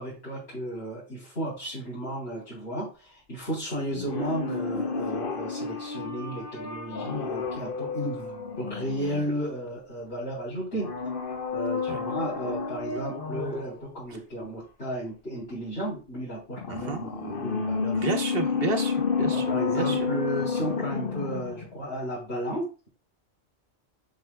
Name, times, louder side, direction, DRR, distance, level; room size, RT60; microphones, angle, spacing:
voice 1, 0.0-10.9 11.5-18.1 19.3-22.9, right 1 dB, 90° left, -9 dB, 3.8 m, -34 dB
sound 1, 3.9-9.7 10.7-13.8 16.5-21.7 22.0-22.1, left 5 dB, 60° left, 1.1 m, -31 dB
voice 2, 16.7-17.0 17.9-20.1, right 4 dB, 60° right, 5 dB, 1.3 m, -32 dB
7.2 x 7.0 x 2.3 m, 0.31 s
omnidirectional pair, 1.1 m